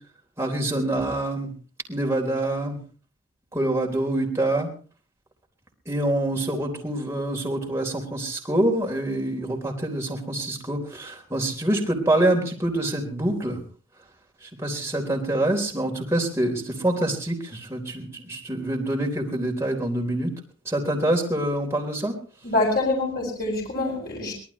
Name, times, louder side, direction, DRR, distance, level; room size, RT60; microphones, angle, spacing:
voice 1, 0.4-1.5 1.9-2.8 3.5-4.7 5.9-13.6 14.4-20.3 20.7-22.1, right 1 dB, 15° right, 0 dB, 3.8 m, -26 dB
voice 2, 22.4-24.3, left 2 dB, 45° left, -1 dB, 7.1 m, -25 dB
24.0 x 18.5 x 3.1 m, 0.40 s
head